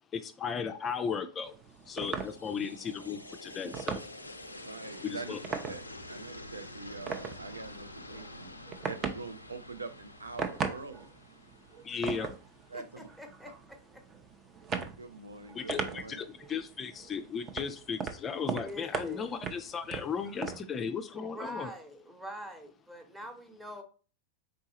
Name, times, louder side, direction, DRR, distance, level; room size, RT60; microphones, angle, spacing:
voice 1, 0.1-1.5 1.9-4.0 5.0-5.4 11.8-12.3 15.5-21.7, left 6 dB, 25° left, 0.4 m, -36 dB
sound 1, 1.4-20.6, right 5 dB, 25° right, 0.6 m, -40 dB
sound 2, 1.7-12.8, left 1 dB, 85° left, 0.4 m, -48 dB
voice 2, 4.6-5.3 5.7-8.5 8.9-11.1 12.0-12.3 12.7-13.1 15.0-16.2, right 3 dB, 75° right, 0.4 m, -44 dB
voice 3, 12.7-14.0 18.5-19.3 21.1-23.8, equal, 10° right, 1.0 m, -45 dB
4.6 x 3.8 x 2.8 m
figure-of-eight pair, 90°, 0 cm